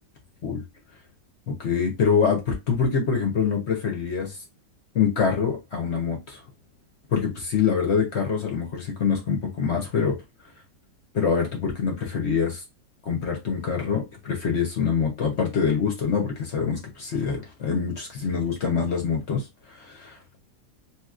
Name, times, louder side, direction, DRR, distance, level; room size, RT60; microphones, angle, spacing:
voice 1, 1.5-4.4 4.9-6.4 7.1-10.2 11.1-12.6 13.1-20.4, left 6 dB, 55° left, 0.8 m, -25 dB
2.9 x 2.8 x 2.4 m
omnidirectional pair, 1.9 m